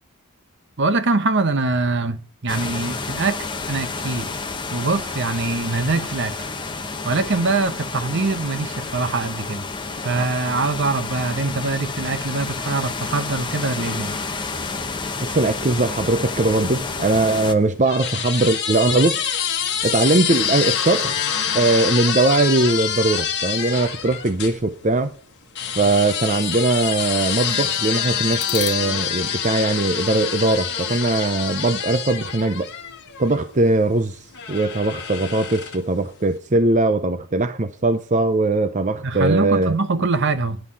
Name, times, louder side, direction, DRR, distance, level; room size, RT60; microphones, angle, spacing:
voice 1, 0.8-4.3 4.7-6.4 7.0-9.6 10.0-14.2 39.0-40.6, right 3 dB, 55° right, 0.9 m, -23 dB
sound 1, 2.5-17.5, left 4 dB, 20° left, 1.0 m, -30 dB
voice 2, 15.2-19.3 19.8-25.1 25.8-32.7 33.2-39.8, right 2 dB, 35° right, 0.6 m, -20 dB
sound 2, 17.6-24.6 25.6-33.5 34.3-36.0, left 8 dB, 55° left, 1.6 m, -26 dB
sound 3, 19.1-20.7 28.3-36.2, left 9 dB, 80° left, 1.3 m, -40 dB
10.5 x 5.7 x 7.4 m
head